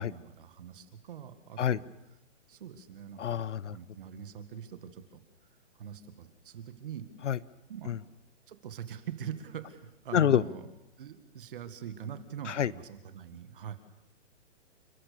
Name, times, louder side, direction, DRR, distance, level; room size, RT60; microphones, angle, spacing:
voice 1, 0.0-1.9 2.5-3.4 3.7-5.2 5.8-7.1 7.7-7.9 8.5-10.7 11.0-13.8, right 8 dB, 45° right, 10 dB, 1.9 m, -43 dB
voice 2, 3.2-3.7 7.3-7.4 7.9-8.0 10.1-10.4 12.6-12.7, left 9 dB, 75° left, 20 dB, 0.9 m, -26 dB
29.0 x 13.5 x 6.9 m, 0.90 s
hypercardioid pair, 165°, 37 cm